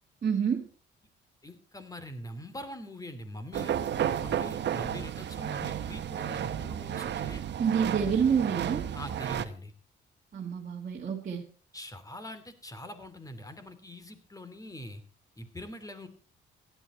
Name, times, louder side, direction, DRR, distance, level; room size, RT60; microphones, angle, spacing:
voice 1, 0.2-0.7 7.6-8.9 10.3-11.4, right 7 dB, 40° right, -1 dB, 1.8 m, -28 dB
voice 2, 1.4-3.8 4.2-7.4 8.9-9.7 11.7-15.0 15.4-16.1, left 1 dB, 15° left, 10 dB, 2.7 m, -43 dB
sound 1, 3.5-9.5, right 9 dB, 60° right, 1.1 m, -32 dB
16.0 x 11.0 x 4.3 m, 0.39 s
cardioid pair, 90°, 20 cm